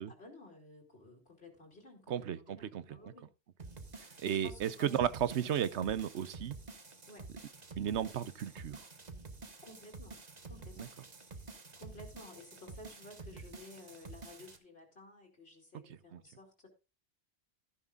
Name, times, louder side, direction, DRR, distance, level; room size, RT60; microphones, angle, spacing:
voice 1, 0.0-3.3 4.0-5.0 5.5-5.7 7.1-7.3 9.6-11.0 11.2-11.5 11.8-16.7, left 2 dB, 60° left, 3.3 m, -54 dB
voice 2, 2.1-2.8 4.2-6.6 7.8-8.9 10.8-10.9 16.1-16.2, right 9 dB, 80° right, 1.1 m, -34 dB
sound 1, 3.6-14.6, right 3 dB, 40° right, 1.5 m, -50 dB
14.0 x 11.0 x 2.5 m
omnidirectional pair, 1.1 m